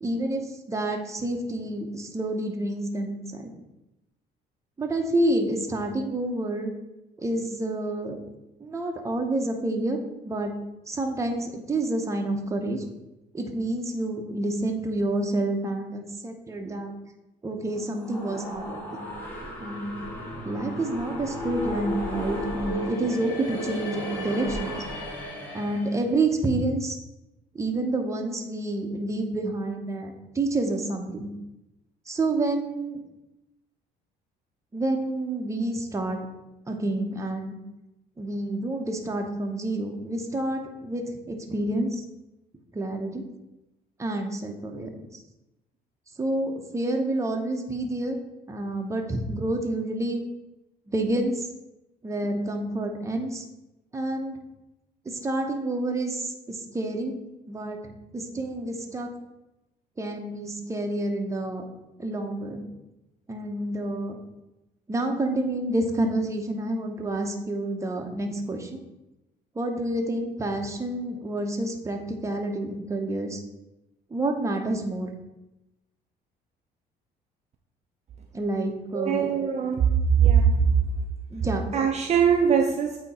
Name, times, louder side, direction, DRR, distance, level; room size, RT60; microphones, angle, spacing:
voice 1, 0.0-3.5 4.8-6.7 7.2-8.2 8.6-10.0 10.2-10.5 10.9-12.8 13.3-16.9 17.4-19.1 19.6-20.0 20.4-24.9 25.5-27.0 27.5-31.3 32.1-33.0 34.7-36.2 36.7-37.6 38.2-42.0 42.7-43.2 44.0-45.2 46.2-48.2 48.5-50.2 50.9-51.5 52.0-53.4 53.9-54.4 55.0-57.1 57.5-59.1 60.0-61.6 62.0-62.7 63.3-64.2 64.9-68.8 69.5-73.4 74.1-75.1 78.3-79.3 81.3-81.7, right 2 dB, 15° right, 3 dB, 0.8 m, -28 dB
sound 1, 17.7-26.0, equal, 10° left, 1.9 m, -34 dB
voice 2, 78.9-80.9 81.7-83.0, right 7 dB, 40° right, 2 dB, 0.5 m, -21 dB
8.2 x 2.9 x 4.1 m, 0.95 s
cardioid pair, 110°, 17 cm